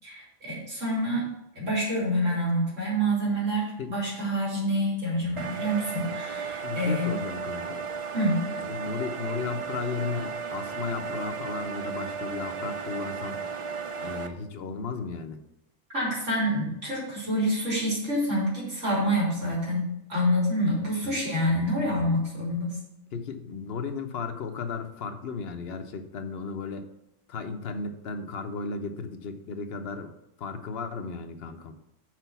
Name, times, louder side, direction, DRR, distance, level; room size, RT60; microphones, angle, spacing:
voice 1, 0.0-1.3 1.6-7.2 8.1-8.4 15.9-19.8 20.1-22.8, equal, 75° right, -6 dB, 3.9 m, -27 dB
sound 1, 5.4-14.3, right 6 dB, 45° right, 0.4 m, -34 dB
voice 2, 6.6-7.8 8.6-13.4 14.0-15.4 21.0-21.2 23.1-26.8 27.3-30.1 30.4-31.7, left 4 dB, 55° left, 7 dB, 1.0 m, -35 dB
6.1 x 5.2 x 6.9 m, 0.84 s
omnidirectional pair, 1.3 m